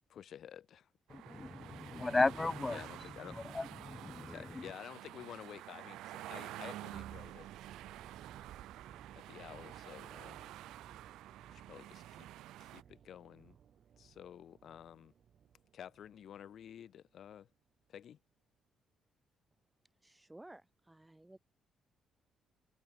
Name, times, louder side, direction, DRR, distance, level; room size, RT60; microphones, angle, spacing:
voice 1, 0.1-0.9 2.7-3.4 4.2-7.5 9.1-10.5 11.5-12.3 12.6-13.6 14.0-15.1 15.7-17.5 17.9-18.2, left 9 dB, 65° left, 4.1 m, -51 dB
sound 1, 1.1-12.8, right 15 dB, 90° right, 4.0 m, -49 dB
voice 2, 1.3-2.8 3.5-4.2, left 3 dB, 20° left, 0.4 m, -34 dB
sound 2, 6.9-16.9 17.2-17.4, right 8 dB, 60° right, 4.5 m, -58 dB
voice 3, 19.8-21.4, right 1 dB, 10° right, 5.1 m, -56 dB
cardioid pair, 90°, 0 cm